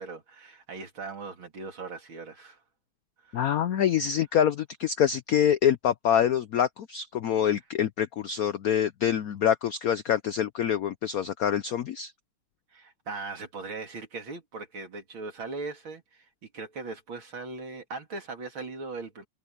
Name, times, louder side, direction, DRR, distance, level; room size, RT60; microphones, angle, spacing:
voice 1, 0.0-2.6 3.2-3.4 12.7-16.3 16.5-19.3, right 3 dB, 70° right, 3.5 m, -39 dB
voice 2, 3.3-12.1, left 9 dB, 85° left, 0.7 m, -25 dB
omnidirectional pair, 2.3 m